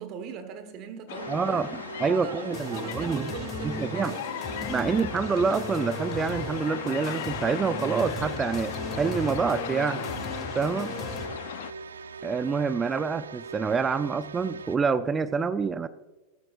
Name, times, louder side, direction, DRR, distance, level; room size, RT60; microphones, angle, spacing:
voice 1, 0.0-4.7 10.7-11.3, right 7 dB, 45° right, 8 dB, 1.5 m, -41 dB
sound 1, 1.1-11.7, left 13 dB, 65° left, 0.6 m, -38 dB
sound 2, 1.1-14.8, right 4 dB, 80° right, 0.5 m, -41 dB
voice 2, 1.3-3.3 3.6-4.1 4.7-10.0 10.5-10.9 12.2-15.9, right 5 dB, 20° right, 13 dB, 0.6 m, -27 dB
sound 3, 2.5-11.3, left 1 dB, 35° left, 2.8 m, -37 dB
18.5 x 13.5 x 2.6 m, 1.1 s
figure-of-eight pair, 90°, 0 cm